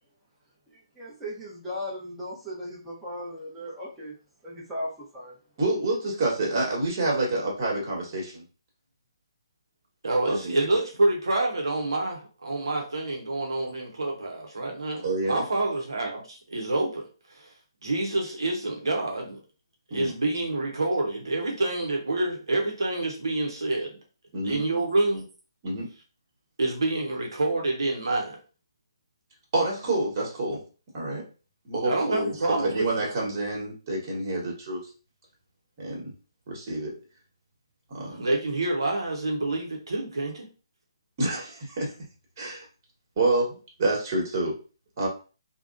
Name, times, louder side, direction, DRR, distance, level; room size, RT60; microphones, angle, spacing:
voice 1, 1.0-4.1 4.4-5.4, left 1 dB, 5° right, -7 dB, 0.8 m, -37 dB
voice 2, 5.6-8.4 10.3-10.6 15.0-15.4 19.9-20.1 24.3-24.6 25.6-25.9 29.5-30.6 30.9-31.2 31.6-34.8 35.8-36.0 36.5-37.0 37.9-38.2 41.2-41.9 42.4-42.7 43.2-44.5 45.0-45.1, right 2 dB, 40° right, -2 dB, 1.3 m, -28 dB
voice 3, 10.0-17.5 17.8-19.4 19.9-24.0 24.4-25.3 26.6-28.4 31.8-32.9 38.1-40.5, right 2 dB, 70° right, 1 dB, 0.7 m, -27 dB
3.4 x 2.1 x 2.5 m, 0.35 s
figure-of-eight pair, 140°, 3 cm